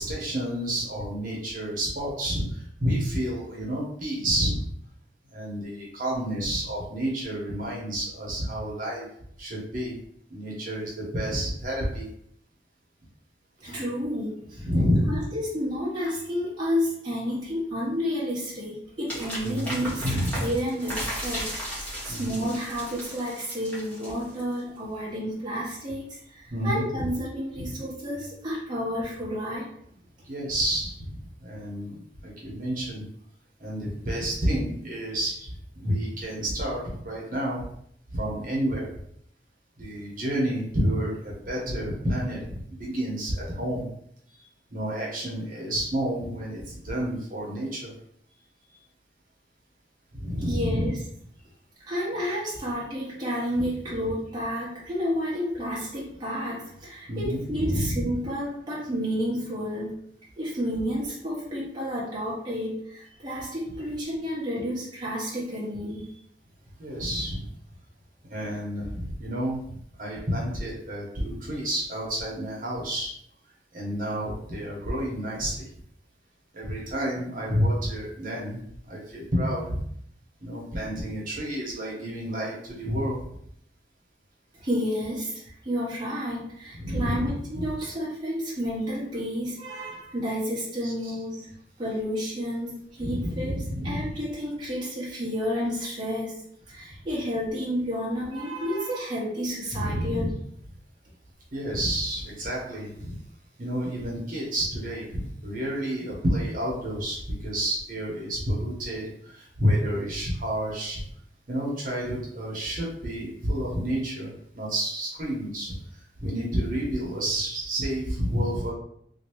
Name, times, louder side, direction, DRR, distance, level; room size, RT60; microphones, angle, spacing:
voice 1, 0.0-4.7 5.3-9.1 9.4-10.0 10.3-12.1 14.6-15.3 19.4-20.5 22.1-22.4 26.5-26.8 27.6-27.7 30.3-33.0 33.6-37.6 38.1-39.0 39.8-43.9 44.4-47.9 50.1-50.9 57.1-58.1 66.8-67.5 68.3-73.1 73.7-75.6 76.5-79.8 80.4-83.2 86.7-87.7 90.8-91.1 93.0-94.1 99.7-100.3 101.5-103.2 103.6-111.0 111.5-118.7, equal, 50° right, -4 dB, 1.1 m, -30 dB
voice 2, 13.6-14.7 15.1-20.0 20.4-29.7 50.4-51.0 51.9-60.0 60.4-66.1 84.5-91.5 91.8-100.4, equal, 25° right, -8 dB, 0.9 m, -31 dB
sound 1, 19.1-24.6, equal, 10° left, 1.1 m, -35 dB
3.2 x 2.8 x 3.0 m, 0.68 s
head